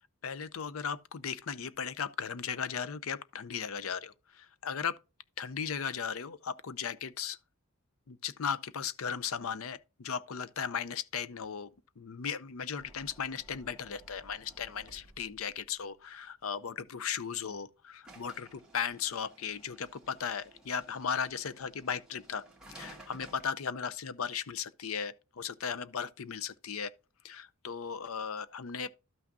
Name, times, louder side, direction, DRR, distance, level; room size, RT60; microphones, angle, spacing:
voice 1, 0.2-4.9 5.4-7.4 8.1-11.7 12.0-22.4 22.7-26.9 27.2-28.9, left 7 dB, 75° left, 0.5 m, -36 dB
sound 1, 12.8-15.5 18.0-23.5, right 1 dB, 5° right, 1.6 m, -55 dB
12.5 x 5.9 x 2.6 m
head